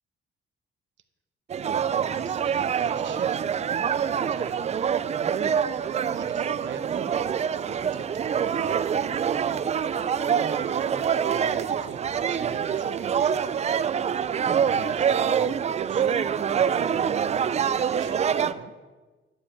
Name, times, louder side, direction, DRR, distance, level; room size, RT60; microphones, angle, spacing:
sound 1, 1.5-18.5, right 7 dB, 35° right, 0.3 m, -25 dB
voice 1, 1.9-3.5 4.1-4.6 6.1-9.0 10.3-13.5 14.6-15.6 15.9-16.2 16.6-18.7, right 7 dB, 65° right, 9 dB, 1.0 m, -42 dB
11.0 x 5.0 x 8.5 m, 1.3 s
cardioid pair, 140°, 21 cm